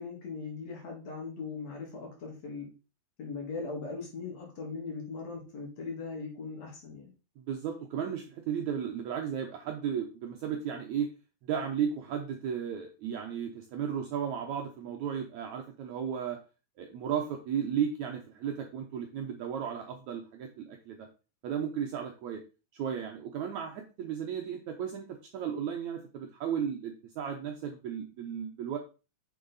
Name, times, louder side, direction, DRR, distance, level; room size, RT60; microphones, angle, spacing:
voice 1, 0.0-2.7 3.2-7.1, left 4 dB, 50° left, 0 dB, 3.0 m, -39 dB
voice 2, 7.4-11.1 11.5-16.4 16.8-21.1 21.4-22.4 22.7-28.8, right 8 dB, 70° right, 3 dB, 1.8 m, -34 dB
7.1 x 6.6 x 4.0 m, 0.32 s
omnidirectional pair, 4.2 m